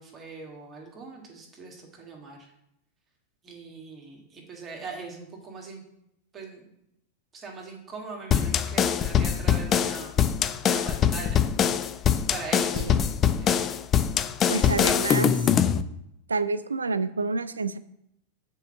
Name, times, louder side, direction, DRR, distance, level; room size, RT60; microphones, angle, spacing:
voice 1, 0.0-2.5 3.4-5.8 6.3-6.6 7.3-10.2 10.6-11.5 12.3-13.5, right 4 dB, 25° right, 0 dB, 1.7 m, -41 dB
sound 1, 8.3-15.8, left 8 dB, 25° left, 0.4 m, -23 dB
voice 2, 14.5-15.3 16.3-17.8, right 3 dB, 75° right, 14 dB, 0.4 m, -28 dB
6.8 x 4.6 x 6.9 m, 0.78 s
figure-of-eight pair, 90°, 0 cm